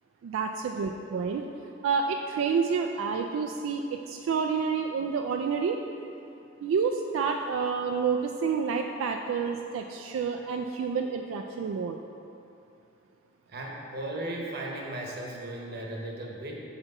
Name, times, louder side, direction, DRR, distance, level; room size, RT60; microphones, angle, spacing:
voice 1, 0.2-1.4 1.8-5.8 6.6-12.0, right 5 dB, 90° right, 4 dB, 0.3 m, -29 dB
voice 2, 13.5-16.6, right 1 dB, 55° right, -1 dB, 0.9 m, -36 dB
8.0 x 2.9 x 5.4 m, 2.8 s
head